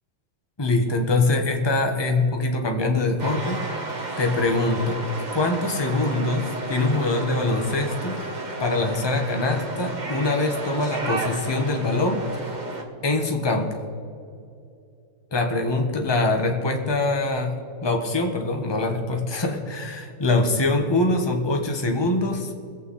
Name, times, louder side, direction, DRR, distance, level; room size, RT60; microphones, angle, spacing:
voice 1, 0.6-3.6 4.2-5.0 5.3-8.2 8.6-12.2 13.0-13.8 15.3-17.5 17.8-22.5, left 2 dB, 15° left, 2 dB, 1.1 m, -23 dB
sound 1, 3.2-12.8, right 2 dB, 25° right, 1.2 m, -32 dB
22.0 x 8.2 x 4.2 m, 2.5 s
omnidirectional pair, 2.2 m